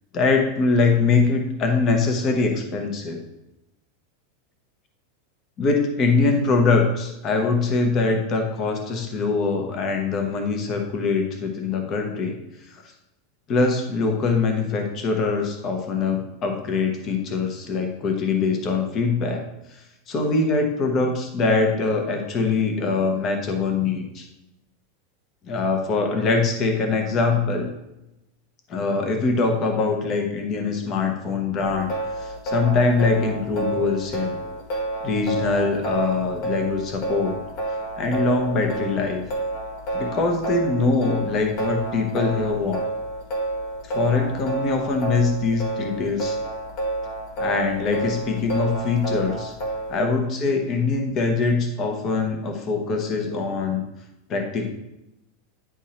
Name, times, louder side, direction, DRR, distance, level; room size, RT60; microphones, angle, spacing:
voice 1, 0.1-3.2 5.6-12.4 13.5-19.4 20.1-24.3 25.5-27.7 28.7-34.4 35.0-37.4 38.0-39.2 39.9-42.8 43.8-46.4 47.4-49.5 49.9-53.8 54.3-54.7, left 4 dB, 25° left, 3 dB, 1.0 m, -23 dB
sound 1, 31.6-50.0, right 2 dB, 45° left, 1.5 m, -30 dB
9.6 x 3.6 x 4.2 m, 0.90 s
supercardioid pair, 175°, 0 cm